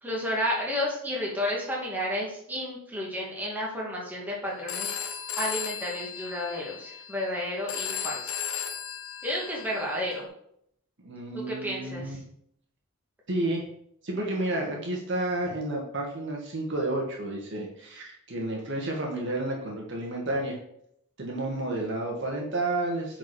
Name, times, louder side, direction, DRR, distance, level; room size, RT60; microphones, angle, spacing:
voice 1, 0.0-8.3 9.2-10.3 11.3-12.2, left 1 dB, 10° right, -4 dB, 2.3 m, -32 dB
Telephone, 4.7-10.2, left 8 dB, 70° left, 1.0 m, -36 dB
voice 2, 11.0-12.2 13.3-13.6 14.0-20.6 21.2-23.2, right 2 dB, 55° right, 0 dB, 1.9 m, -31 dB
9.2 x 4.8 x 5.0 m, 0.71 s
head